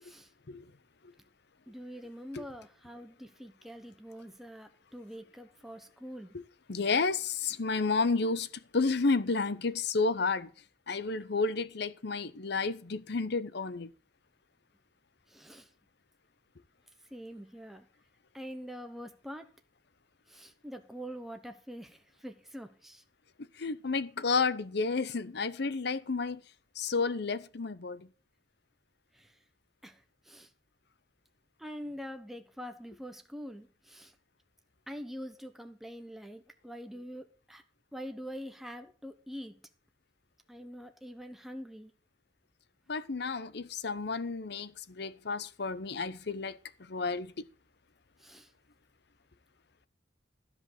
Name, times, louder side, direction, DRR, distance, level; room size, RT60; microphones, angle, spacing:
voice 1, 1.7-6.4 15.3-15.7 17.1-17.9 18.3-19.5 20.3-23.0 29.1-29.3 29.8-30.0 30.3-30.5 31.6-34.1 34.9-37.6 37.9-39.6 40.5-41.9 48.2-48.5, equal, ahead, 1.0 m, -45 dB
voice 2, 6.7-8.5 8.7-10.5 10.9-13.9 23.6-26.4 26.8-28.1 42.9-47.3, left 4 dB, 65° left, 0.8 m, -31 dB
13.0 x 5.3 x 7.8 m
head